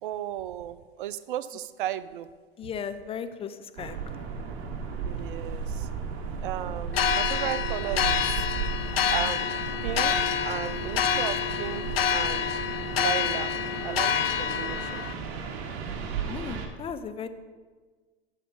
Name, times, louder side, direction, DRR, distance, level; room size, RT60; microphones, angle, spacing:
voice 1, 0.0-2.3 5.0-5.9 6.4-8.5 9.1-9.5 9.8-10.1 10.4-11.8 12.1-12.6 12.9-13.5 13.8-15.3 15.7-16.2, right 12 dB, 55° right, 16 dB, 0.6 m, -35 dB
voice 2, 2.6-4.3 16.3-17.3, left 7 dB, 20° left, 10 dB, 0.7 m, -36 dB
sound 1, 3.8-16.7, right 6 dB, 40° right, 1.5 m, -35 dB
sound 2, 6.9-15.1, left 7 dB, 70° left, 0.8 m, -27 dB
11.0 x 7.3 x 5.6 m, 1.4 s
figure-of-eight pair, 90°, 30 cm